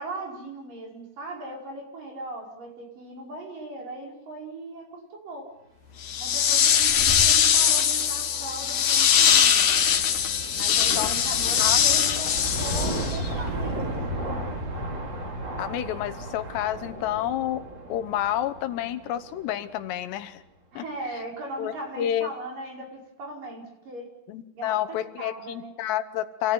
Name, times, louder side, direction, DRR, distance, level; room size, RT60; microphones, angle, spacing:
voice 1, 0.0-5.5 6.2-9.7 10.5-12.3 12.6-14.5 20.7-24.1 24.5-25.7, right 2 dB, 55° right, 0 dB, 6.8 m, -38 dB
sound 1, 6.0-13.3, left 8 dB, 55° left, 2.8 m, -21 dB
sound 2, 6.3-19.8, right 1 dB, 30° right, 3.1 m, -35 dB
voice 2, 11.6-12.0 15.6-17.6 17.9-20.4 20.7-21.2 21.6-22.3 24.3-26.5, left 12 dB, 85° left, 11 dB, 3.3 m, -29 dB
27.0 x 17.5 x 9.5 m, 0.90 s
omnidirectional pair, 4.8 m